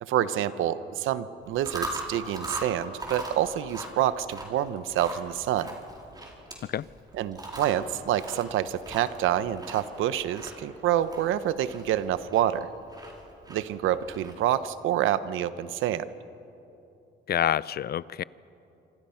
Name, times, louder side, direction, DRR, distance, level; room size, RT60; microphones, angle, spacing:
voice 1, 0.0-5.7 7.2-12.7 13.5-16.1, right 11 dB, 85° right, 14 dB, 0.9 m, -27 dB
Chewing mastication, 1.4-14.7, right 1 dB, 20° right, 4.5 m, -41 dB
voice 2, 17.3-18.2, left 10 dB, 55° left, 20 dB, 0.5 m, -27 dB
27.5 x 26.0 x 5.8 m, 2.9 s
cardioid pair, 90°, 20 cm